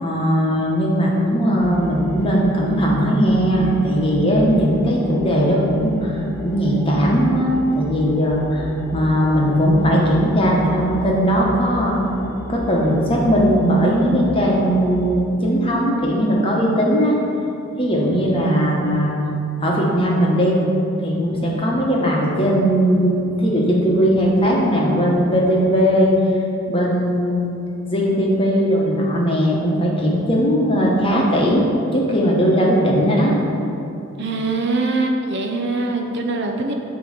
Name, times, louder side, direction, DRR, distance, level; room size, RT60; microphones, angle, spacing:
voice 1, 0.0-8.7 8.9-12.0 12.5-17.2 17.8-19.1 19.6-20.6 21.0-26.1 26.7-27.5 27.9-33.4, equal, 25° left, -3 dB, 1.0 m, -18 dB
sound 1, 1.6-15.2, left 1 dB, 10° left, 0.4 m, -35 dB
voice 2, 34.2-36.7, right 3 dB, 50° right, 3 dB, 0.6 m, -22 dB
8.6 x 3.0 x 6.5 m, 2.8 s
head